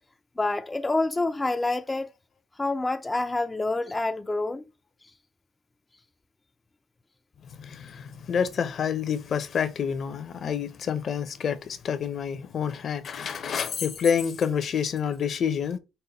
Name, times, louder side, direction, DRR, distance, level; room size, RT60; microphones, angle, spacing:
voice 1, 0.4-2.1 2.6-4.6 5.0-5.1, left 2 dB, 15° left, 0.3 m, -27 dB
voice 2, 7.6-15.8, left 7 dB, 50° left, 0.6 m, -28 dB
5.5 x 2.1 x 3.9 m
cardioid pair, 95°, 0 cm